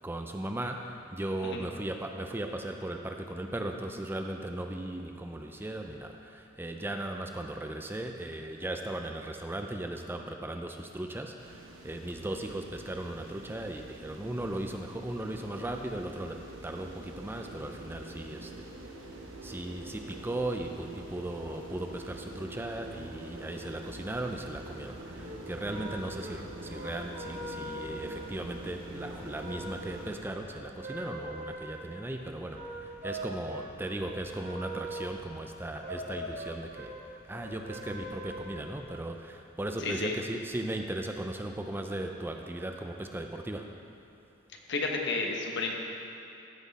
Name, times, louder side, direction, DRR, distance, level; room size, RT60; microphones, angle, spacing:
voice 1, 0.0-18.7 19.1-43.8, right 1 dB, 10° right, 4 dB, 0.4 m, -37 dB
sound 1, 11.4-30.2, right 1 dB, 85° right, 1.3 m, -45 dB
sound 2, 25.1-38.9, right 1 dB, 45° right, 1.7 m, -42 dB
voice 2, 39.8-40.2 44.7-45.7, left 3 dB, 60° left, 1 dB, 1.1 m, -31 dB
14.5 x 6.1 x 4.1 m, 2.9 s
head